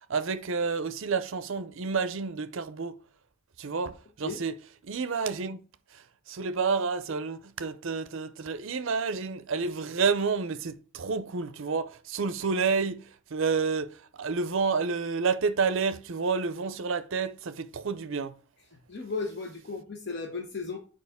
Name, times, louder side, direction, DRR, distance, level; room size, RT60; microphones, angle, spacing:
voice 1, 0.1-3.0 3.6-4.5 4.8-5.6 5.9-18.4, right 5 dB, 60° right, 0.5 m, -29 dB
voice 2, 18.7-20.8, left 4 dB, 50° left, 0.9 m, -35 dB
6.7 x 4.8 x 3.5 m
head